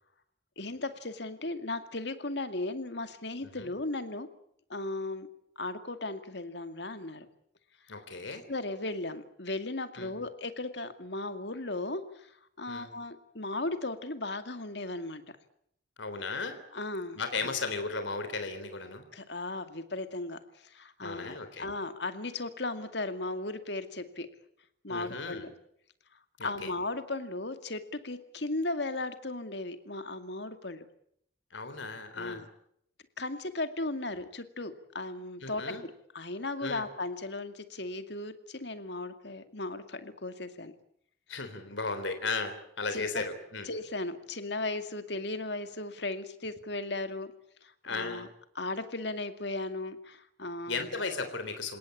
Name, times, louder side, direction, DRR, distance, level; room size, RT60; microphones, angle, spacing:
voice 1, 0.6-4.3 4.7-5.3 5.6-7.3 8.5-15.2 16.7-17.5 19.1-24.3 24.8-25.5 26.4-30.9 32.2-32.5 33.2-40.7 42.9-43.3 43.6-47.3 47.6-48.3 48.6-50.8, left 2 dB, 60° left, 9 dB, 2.3 m, -36 dB
voice 2, 7.9-8.4 10.0-10.1 12.7-12.9 16.0-16.6 17.2-19.1 21.0-21.7 24.9-25.5 26.4-26.7 31.5-32.4 35.4-35.8 36.6-36.8 41.3-43.7 47.8-48.2 50.7-51.8, left 4 dB, 80° left, 8 dB, 3.6 m, -35 dB
28.5 x 18.0 x 8.6 m, 0.71 s
head